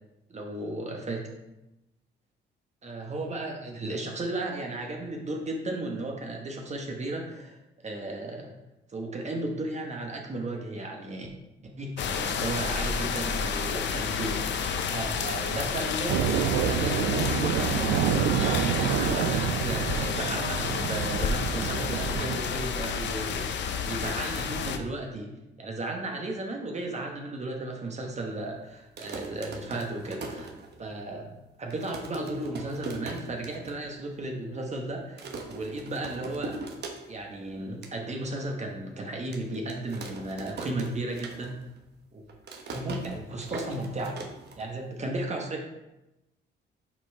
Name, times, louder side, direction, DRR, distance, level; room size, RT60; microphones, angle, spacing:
voice 1, 0.3-1.2 2.8-8.5 8.9-11.3 11.8-30.5 30.8-31.3 31.6-36.6 37.1-41.6 42.1-42.3 42.7-44.2 44.6-45.6, right 2 dB, 35° right, 1 dB, 1.0 m, -35 dB
sound 1, 12.0-24.8, left 6 dB, 65° left, 0.6 m, -30 dB
sound 2, 16.1-22.4, right 10 dB, 90° right, 0.4 m, -28 dB
sound 3, 28.8-31.1 31.4-31.5 31.7-33.8 34.1-34.2 34.4-34.8 35.2-37.3 37.6-37.9 38.5-38.6 39.3-41.8 42.0-45.0, right 3 dB, 55° right, 1.1 m, -40 dB
6.0 x 4.3 x 4.4 m, 0.95 s
cardioid pair, 90°, 20 cm